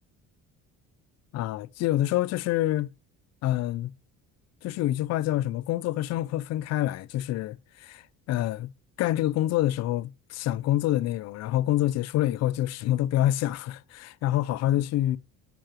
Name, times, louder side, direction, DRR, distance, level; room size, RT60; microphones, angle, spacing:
voice 1, 1.3-2.9 3.4-3.9 4.6-8.7 9.0-15.2, left 14 dB, 55° left, 0.5 m, -27 dB
7.5 x 7.0 x 2.9 m
cardioid pair, 160°, 32 cm